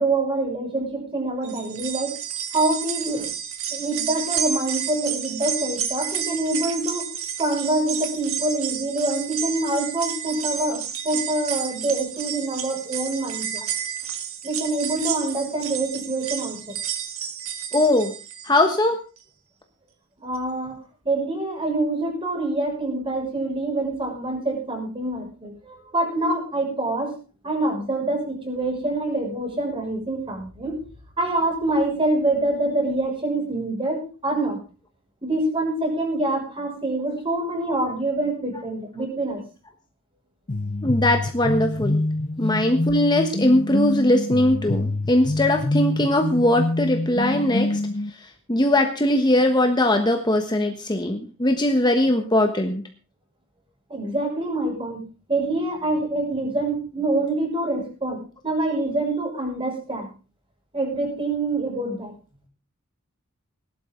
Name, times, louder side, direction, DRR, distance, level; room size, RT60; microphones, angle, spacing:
voice 1, 0.0-2.2 2.5-3.3 3.7-7.1 7.4-13.6 14.4-16.7 20.2-20.8 21.0-27.1 27.4-30.8 31.2-34.6 35.2-39.4 53.9-60.1 60.7-62.1, right 2 dB, 25° right, 1 dB, 6.3 m, -25 dB
sound 1, 1.4-18.8 19.2-19.3 20.4-20.5, right 9 dB, 85° right, 1.8 m, -31 dB
voice 2, 17.7-18.1 18.4-19.0 40.8-42.0 42.4-47.8 48.5-52.8, left 1 dB, 20° left, 4 dB, 1.3 m, -20 dB
sound 2, 40.5-48.1, left 2 dB, 35° left, 0.7 m, -26 dB
18.5 x 12.0 x 3.9 m, 0.35 s
head